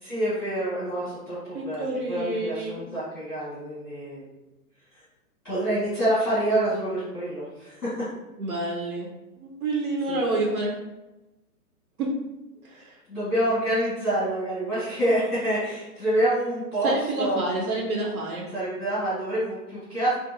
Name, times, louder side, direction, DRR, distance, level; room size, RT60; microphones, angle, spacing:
voice 1, 0.0-4.2 5.4-8.1 10.1-10.2 13.1-17.5 18.5-20.2, right 1 dB, ahead, -20 dB, 0.4 m, -27 dB
voice 2, 1.5-2.8 8.4-9.1 9.4-10.7 12.0-12.2 12.6-13.0 16.8-18.5, right 2 dB, 65° right, -2 dB, 0.7 m, -28 dB
2.6 x 2.5 x 2.6 m, 1.0 s
hypercardioid pair, 135°, 46 cm